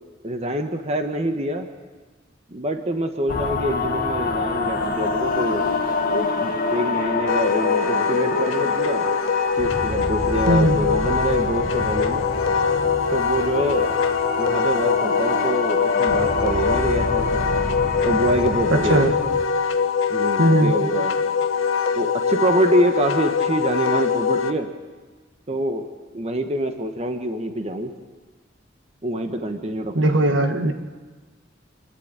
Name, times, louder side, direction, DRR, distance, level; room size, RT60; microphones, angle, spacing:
voice 1, 0.2-1.7 2.5-5.7 6.1-9.0 9.6-12.2 13.1-14.0 14.4-17.4 18.0-19.1 20.1-21.1 21.9-24.7 25.5-25.9 26.1-27.9 29.0-30.1, right 1 dB, 35° right, 6 dB, 1.2 m, -25 dB
sound 1, 3.3-19.4, left 3 dB, 45° left, 1.8 m, -26 dB
Wind instrument woodwind instrument, 7.3-24.5, left 6 dB, 85° left, 1.1 m, -23 dB
voice 2, 10.5-10.8 18.7-19.1 20.4-20.7 29.9-30.7, right 1 dB, 70° right, 6 dB, 1.5 m, -18 dB
27.0 x 11.0 x 8.8 m, 1.4 s
head